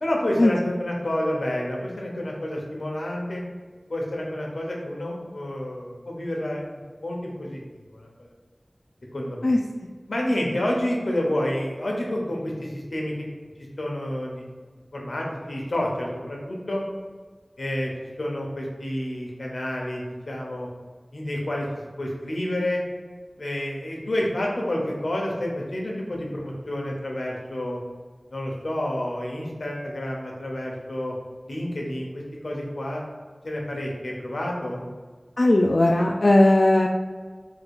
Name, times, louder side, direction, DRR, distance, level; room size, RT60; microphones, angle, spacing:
voice 1, 0.0-3.4 3.9-7.6 7.9-8.3 9.1-9.5 10.1-13.3 13.6-14.4 14.9-16.8 17.6-17.9 18.2-20.7 21.1-21.7 22.0-22.8 23.4-27.8 28.3-31.1 31.5-33.0 33.4-34.9, left 1 dB, 90° left, -2 dB, 1.0 m, -29 dB
voice 2, 35.4-36.9, left 1 dB, 65° left, 0 dB, 0.3 m, -17 dB
3.8 x 2.5 x 4.7 m, 1.4 s
wide cardioid pair, 45°, 0 cm